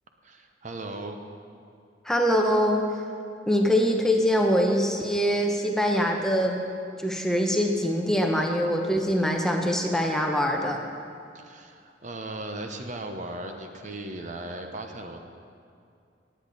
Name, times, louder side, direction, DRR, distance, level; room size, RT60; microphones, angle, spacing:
voice 1, 0.2-1.2 11.3-15.2, right 2 dB, 45° right, 4 dB, 0.8 m, -37 dB
voice 2, 2.0-2.9 3.5-6.6 7.0-10.8, equal, 5° left, 1 dB, 0.8 m, -23 dB
18.5 x 8.4 x 4.0 m, 2.4 s
head